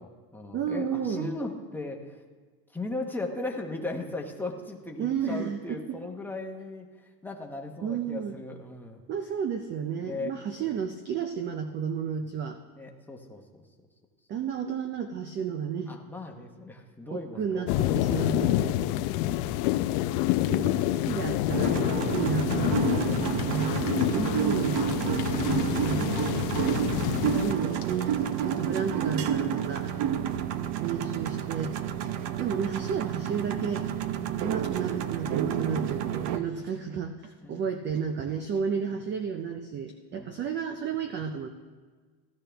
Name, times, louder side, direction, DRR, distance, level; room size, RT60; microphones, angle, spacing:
voice 1, 0.0-2.2 2.7-9.0 10.0-10.7 12.1-12.3 12.7-13.6 15.9-17.7 22.8-23.9 29.9-30.2 31.9-32.2 34.1-34.4 37.4-37.7 38.8-39.0 40.1-40.4, left 2 dB, 5° left, 1 dB, 0.9 m, -39 dB
voice 2, 0.5-1.3 5.0-6.0 7.8-8.4 9.1-12.6 14.3-15.9 17.1-18.8 20.5-21.8 22.1-23.8 24.1-24.9 25.7-26.1 26.5-26.6 27.4-29.9 30.8-31.8 32.4-33.9 34.4-41.5, right 7 dB, 25° right, 7 dB, 0.4 m, -32 dB
sound 1, 17.7-27.5, left 14 dB, 75° left, 0.7 m, -27 dB
sound 2, 21.5-36.4, right 9 dB, 55° right, 0.8 m, -30 dB
sound 3, 22.7-29.9, left 9 dB, 40° left, 1.3 m, -48 dB
16.0 x 12.0 x 3.4 m, 1.5 s
cardioid pair, 145°, 49 cm